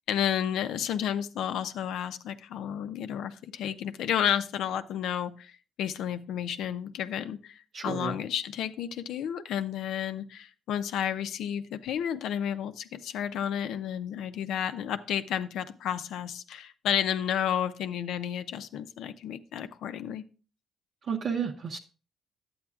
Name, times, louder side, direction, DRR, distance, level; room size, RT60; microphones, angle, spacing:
voice 1, 0.1-5.5 5.8-20.2, left 9 dB, 80° left, 11 dB, 0.5 m, -31 dB
voice 2, 7.7-8.2 21.1-21.8, right 6 dB, 55° right, 0 dB, 0.8 m, -31 dB
10.5 x 8.6 x 2.4 m, 0.36 s
cardioid pair, 90°, 0 cm